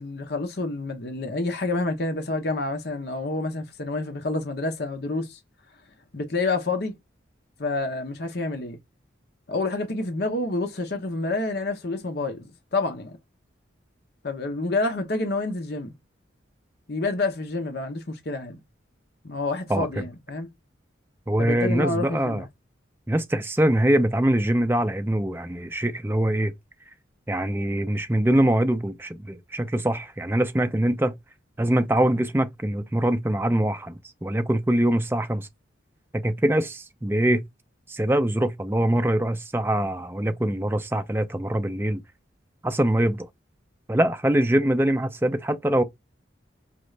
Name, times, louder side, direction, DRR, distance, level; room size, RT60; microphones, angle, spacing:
voice 1, 0.0-5.4 6.1-6.9 7.6-8.8 9.5-13.2 14.2-15.9 16.9-18.6 19.2-20.5 21.4-22.5, left 2 dB, 55° left, 0.8 m, -28 dB
voice 2, 19.7-20.0 21.3-22.4 23.1-26.5 27.3-31.2 31.6-35.5 36.1-37.4 37.9-42.0 42.6-43.3 43.9-45.8, right 1 dB, 10° right, 0.4 m, -23 dB
5.1 x 2.3 x 3.2 m
head